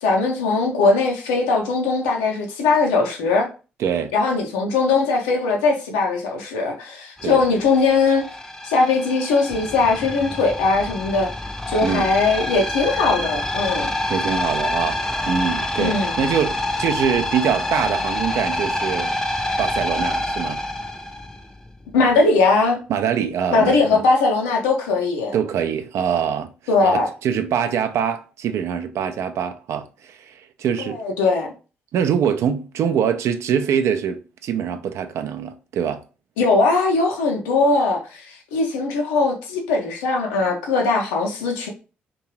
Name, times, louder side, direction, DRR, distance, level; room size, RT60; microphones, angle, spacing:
voice 1, 0.0-3.5 4.1-8.2 8.6-11.3 11.7-13.9 15.8-16.1 21.9-22.8 23.5-25.3 26.7-27.1 30.8-31.5 36.4-41.7, left 3 dB, 75° left, 0.6 m, -20 dB
voice 2, 3.8-4.1 7.2-7.4 11.8-12.1 14.1-15.0 15.3-19.1 19.6-20.6 22.9-24.0 25.3-26.5 26.8-31.0 31.9-36.0, right 8 dB, 60° right, 0.4 m, -24 dB
sound 1, 7.2-21.7, left 1 dB, 10° left, 0.5 m, -27 dB
2.6 x 2.2 x 2.9 m
hypercardioid pair, 40°, 5 cm